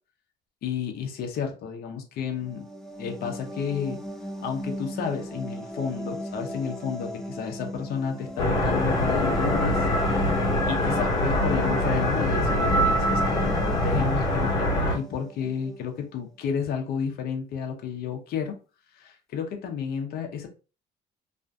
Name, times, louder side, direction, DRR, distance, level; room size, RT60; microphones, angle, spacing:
voice 1, 0.6-2.7 3.0-4.0 4.4-9.9 10.6-18.6 19.0-20.5, left 7 dB, 65° left, 3 dB, 0.6 m, -31 dB
sound 1, 2.3-15.9, equal, 5° left, 0.3 m, -36 dB
sound 2, 8.4-14.9, left 1 dB, 35° left, 1.2 m, -24 dB
2.5 x 2.4 x 2.2 m, 0.33 s
cardioid pair, 110°, 17 cm